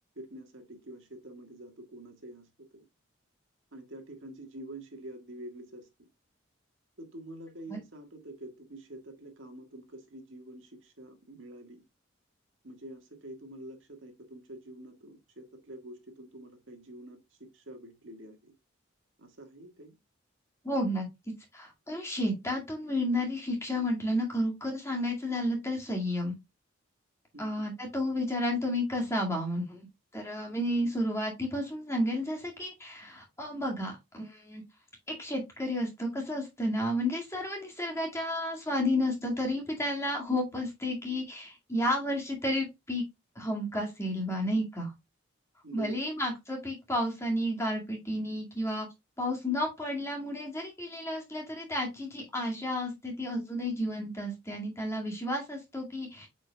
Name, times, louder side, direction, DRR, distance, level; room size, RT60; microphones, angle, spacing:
voice 1, 0.2-2.8 3.7-5.9 7.0-11.8 12.6-18.5 19.2-20.0 27.3-27.7 30.8-30.9 45.6-46.0, right 1 dB, 75° right, 1.7 m, -47 dB
voice 2, 20.6-21.1 21.5-26.4 27.4-29.9 30.1-34.6 35.1-43.0 43.4-44.9 45.7-48.9 49.2-56.3, left 1 dB, 15° left, 2.1 m, -32 dB
8.0 x 5.2 x 2.3 m
head